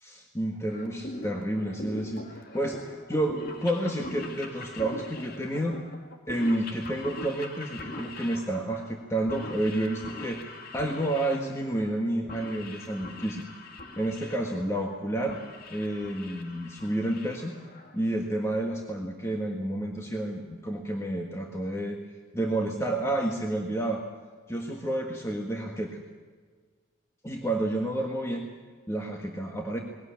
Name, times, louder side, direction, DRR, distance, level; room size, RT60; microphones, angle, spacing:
voice 1, 0.0-5.8 6.3-13.6 14.0-15.4 15.7-17.6 17.9-22.0 22.3-24.0 24.5-26.0 27.2-28.5 28.9-29.8, right 1 dB, 15° left, 1 dB, 1.6 m, -30 dB
sound 1, 0.7-18.1, left 2 dB, 45° left, 2.3 m, -42 dB
20.5 x 17.5 x 8.8 m, 1.6 s
head